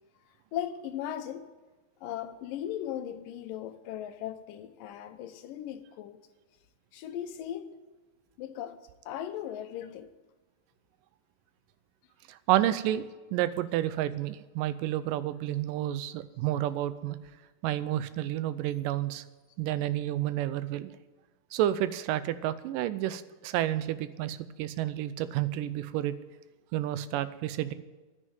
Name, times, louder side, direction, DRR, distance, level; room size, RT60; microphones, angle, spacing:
voice 1, 0.5-1.5 2.0-6.2 6.9-7.7 8.4-8.8 9.1-10.1, left 10 dB, 85° left, 2.6 m, -37 dB
voice 2, 12.3-13.1 13.3-17.2 17.6-19.2 19.6-20.9 21.5-26.1 26.7-27.7, right 13 dB, 85° right, 2.3 m, -30 dB
11.0 x 9.9 x 9.3 m
omnidirectional pair, 3.8 m